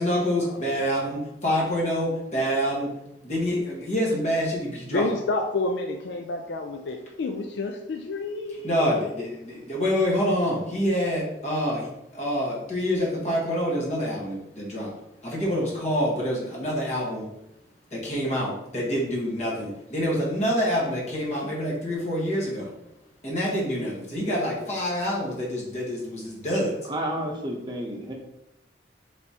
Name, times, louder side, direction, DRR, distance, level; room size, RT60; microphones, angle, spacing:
voice 1, 0.0-2.9 3.2-5.1 8.6-14.9 15.2-17.3 17.9-22.7 23.2-26.8, equal, 40° left, -4 dB, 1.2 m, -26 dB
voice 2, 4.9-9.3, left 2 dB, 70° left, 3 dB, 0.4 m, -30 dB
voice 3, 26.8-28.1, right 1 dB, 25° right, 0 dB, 0.8 m, -31 dB
4.3 x 3.4 x 2.8 m, 0.84 s
head